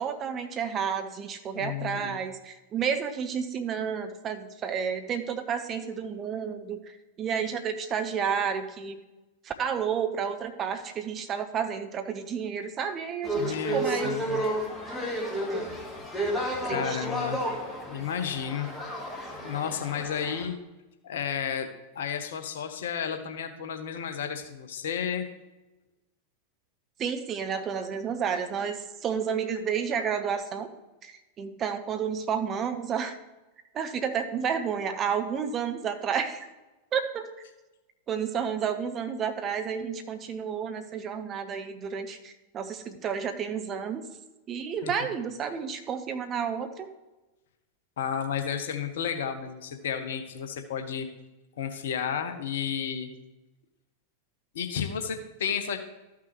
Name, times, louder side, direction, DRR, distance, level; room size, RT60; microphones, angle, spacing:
voice 1, 0.0-9.0 9.4-14.1 15.5-15.8 16.6-17.1 27.0-30.7 31.0-31.1 31.4-33.1 33.7-36.5 36.9-37.3 38.1-44.0 44.5-46.9, right 7 dB, 30° right, 7 dB, 0.8 m, -31 dB
voice 2, 1.5-2.2 13.4-14.4 16.6-17.4 17.9-18.7 19.4-20.6 21.0-21.7 21.9-25.3 44.8-45.1 48.0-51.1 51.6-53.1 54.5-55.8, left 8 dB, 60° left, 8 dB, 0.9 m, -32 dB
sound 1, 13.2-20.5, right 1 dB, 5° left, 1.7 m, -32 dB
13.5 x 5.9 x 3.1 m, 1.1 s
figure-of-eight pair, 90°, 0 cm